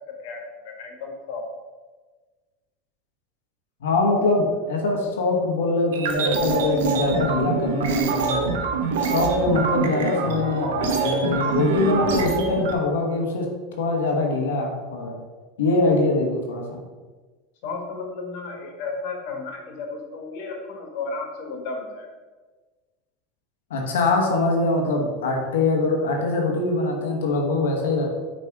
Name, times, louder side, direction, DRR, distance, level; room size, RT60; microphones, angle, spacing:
voice 1, 0.8-1.4 17.6-22.1, left 4 dB, 65° left, 1 dB, 1.5 m, -33 dB
voice 2, 3.8-8.5 9.0-13.4 13.8-15.1 15.6-16.8 23.7-28.1, left 3 dB, 85° left, 0 dB, 1.2 m, -23 dB
sound 1, 5.9-12.7, right 4 dB, 80° right, 0.8 m, -24 dB
6.2 x 3.3 x 4.7 m, 1.3 s
hypercardioid pair, 100°, 0 cm